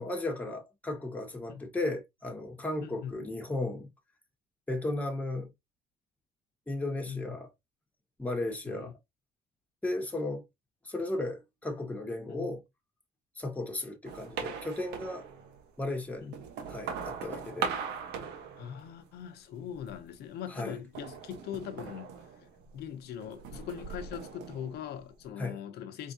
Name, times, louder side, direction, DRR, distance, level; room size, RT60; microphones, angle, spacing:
voice 1, 0.0-3.9 4.7-5.5 6.7-7.5 8.2-8.9 9.8-10.4 10.8-12.6 13.4-15.3 15.8-16.4 16.7-17.7 20.5-20.8 25.4-25.6, left 2 dB, 10° left, 1.3 m, -35 dB
voice 2, 2.8-3.2 7.1-7.4 8.7-8.9 12.3-12.5 16.2-16.3 18.6-22.5 22.7-26.1, left 9 dB, 70° left, 0.7 m, -41 dB
sound 1, 14.1-15.7 16.2-19.2 19.5-20.1 20.9-22.9 23.2-25.3, right 6 dB, 80° right, 1.2 m, -40 dB
4.4 x 3.5 x 2.7 m
cardioid pair, 110°, 17 cm